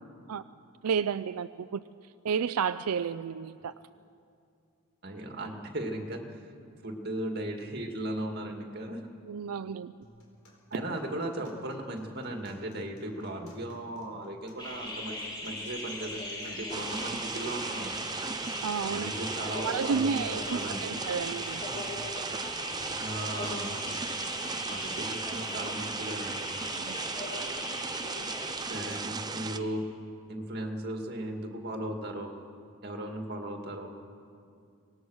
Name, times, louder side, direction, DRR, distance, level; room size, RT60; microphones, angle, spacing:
voice 1, 0.8-1.8 2.2-3.7 9.3-9.9 18.6-19.1 19.6-21.6 26.7-27.0, right 6 dB, 85° right, 12 dB, 0.4 m, -31 dB
voice 2, 5.0-6.2 6.8-9.0 10.7-18.0 18.9-21.0 23.0-23.9 24.7-26.5 28.6-29.8 30.3-32.3 32.8-33.9, right 1 dB, 45° right, 3 dB, 2.1 m, -37 dB
sound 1, 10.0-26.0, equal, 70° left, 4.5 m, -56 dB
sound 2, 14.6-29.7, left 1 dB, 20° left, 4.9 m, -39 dB
sound 3, 16.7-29.6, right 5 dB, 20° right, 0.4 m, -37 dB
25.0 x 19.0 x 6.4 m, 2.4 s
head